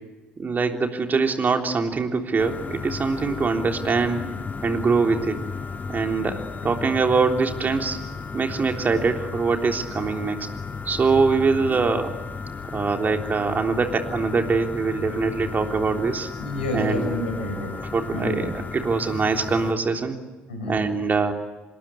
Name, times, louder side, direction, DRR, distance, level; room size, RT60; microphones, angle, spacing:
voice 1, 0.4-4.3 4.6-5.3 5.9-8.0 8.3-10.4 10.9-12.1 12.7-16.3 16.7-17.1 17.9-20.2 20.7-21.3, right 4 dB, 30° right, 4 dB, 3.5 m, -23 dB
sound 1, 2.4-19.7, left 5 dB, 30° left, 1.9 m, -34 dB
voice 2, 16.4-17.8 18.1-18.5 20.5-20.9, left 1 dB, 80° left, 2 dB, 6.0 m, -28 dB
26.5 x 21.5 x 8.5 m, 1.2 s
figure-of-eight pair, 50°, 6 cm